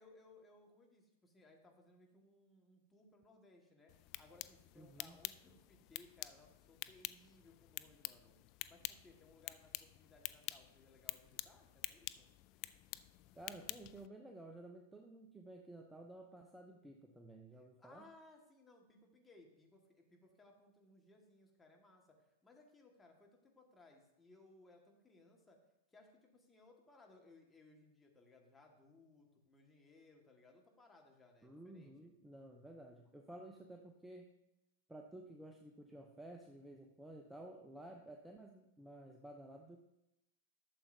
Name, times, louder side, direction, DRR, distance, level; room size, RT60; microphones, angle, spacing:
voice 1, 0.0-8.3 8.7-12.3 17.5-25.6 25.9-32.1, left 2 dB, 15° left, 1 dB, 1.8 m, -64 dB
sound 1, 3.9-14.1, left 18 dB, 45° left, 0.3 m, -49 dB
voice 2, 4.8-5.2 13.3-18.1 31.4-34.3 34.9-39.8, right 1 dB, 5° right, 2 dB, 0.8 m, -54 dB
12.0 x 7.1 x 2.8 m, 0.89 s
figure-of-eight pair, 100°, 0 cm